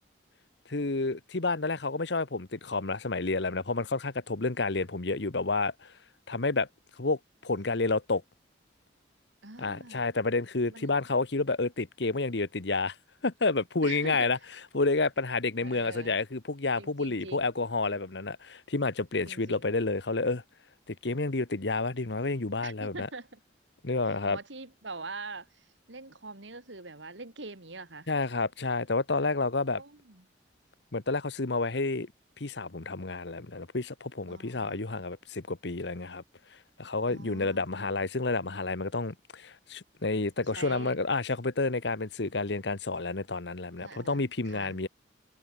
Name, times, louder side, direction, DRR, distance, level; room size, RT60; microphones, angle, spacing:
voice 1, 0.7-5.9 6.3-6.7 7.0-8.2 9.6-12.9 13.2-14.4 14.7-20.4 20.9-23.1 23.8-24.4 28.1-29.8 30.9-32.1 32.4-36.2 36.8-44.9, left 3 dB, 65° left, 1.2 m, -30 dB
voice 2, 9.4-10.0 10.7-10.9 13.8-14.3 15.6-16.2 16.8-17.5 19.2-19.7 22.6-23.4 24.1-28.1 29.7-30.3 34.3-34.9 37.1-37.8 40.5-40.9 43.8-44.8, right 3 dB, 80° right, 3.2 m, -44 dB
head